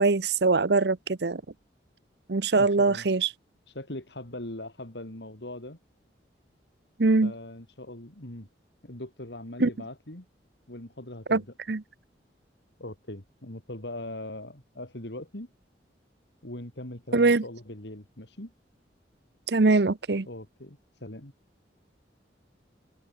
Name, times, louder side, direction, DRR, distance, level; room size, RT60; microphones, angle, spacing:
voice 1, 0.0-1.4 2.3-3.3 7.0-7.3 9.6-9.7 11.3-11.4 11.7-11.8 17.1-17.4 19.5-20.3, right 3 dB, 65° right, 0.8 m, -22 dB
voice 2, 2.6-3.1 3.7-5.8 7.2-8.5 8.8-10.2 10.7-11.5 12.8-15.5 16.4-18.5 20.2-21.3, left 1 dB, 70° left, 3.2 m, -41 dB
head